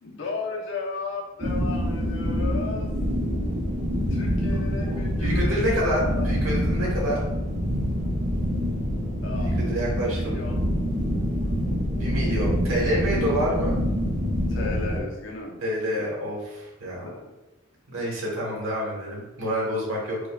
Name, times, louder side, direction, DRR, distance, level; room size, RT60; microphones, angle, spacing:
voice 1, 0.0-3.0 4.1-5.5 5.8-6.3 6.8-6.9 9.2-9.5 10.0-10.7 14.5-15.6 16.0-16.1 17.0-17.3, left 4 dB, 70° left, -1 dB, 0.7 m, -35 dB
sound 1, 1.4-15.0, equal, 40° right, 0.7 m, -26 dB
voice 2, 4.8-7.2 9.4-10.4 12.0-13.8 15.6-17.1 17.9-20.2, equal, 80° right, -3 dB, 1.2 m, -28 dB
4.9 x 2.2 x 2.3 m, 1.0 s
head